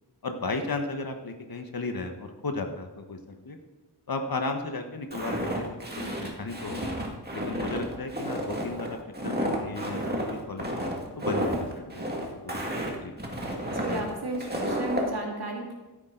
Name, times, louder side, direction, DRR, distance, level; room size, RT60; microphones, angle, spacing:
voice 1, 0.2-3.6 4.1-6.9 7.3-9.0 9.2-10.7 11.1-12.7 13.0-13.1, left 3 dB, 55° left, 5 dB, 1.4 m, -35 dB
Walk footsteps, 5.1-15.1, equal, 25° right, 2.1 m, -31 dB
voice 2, 13.6-15.7, right 2 dB, 65° right, -1 dB, 2.4 m, -34 dB
15.5 x 8.9 x 3.9 m, 1.2 s
wide cardioid pair, 95°, 42 cm